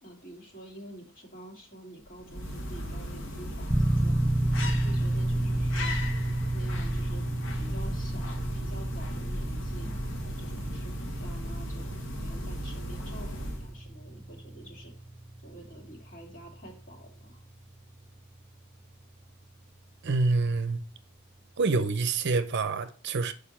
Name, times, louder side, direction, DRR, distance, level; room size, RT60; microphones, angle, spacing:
voice 1, 0.0-4.3 4.6-6.0 6.5-7.3 7.6-10.9 11.2-11.9 12.2-15.1 15.4-17.4, right 1 dB, 40° left, 2.4 m, -48 dB
sound 1, 2.0-13.9, equal, 60° left, 1.3 m, -36 dB
sound 2, 3.7-20.4, right 1 dB, 10° right, 0.3 m, -32 dB
voice 2, 20.0-20.8 21.6-23.3, right 3 dB, 55° right, 0.6 m, -26 dB
6.7 x 5.1 x 4.3 m
head